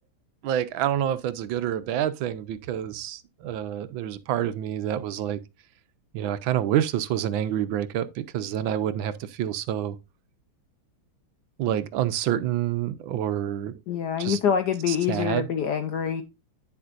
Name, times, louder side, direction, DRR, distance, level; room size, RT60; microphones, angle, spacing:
voice 1, 0.4-5.4 6.1-10.0 11.6-13.7 14.2-14.4 14.9-15.5, right 11 dB, 75° right, 1.4 m, -27 dB
voice 2, 13.9-16.2, left 8 dB, 65° left, 1.2 m, -25 dB
9.9 x 7.0 x 2.5 m
omnidirectional pair, 2.3 m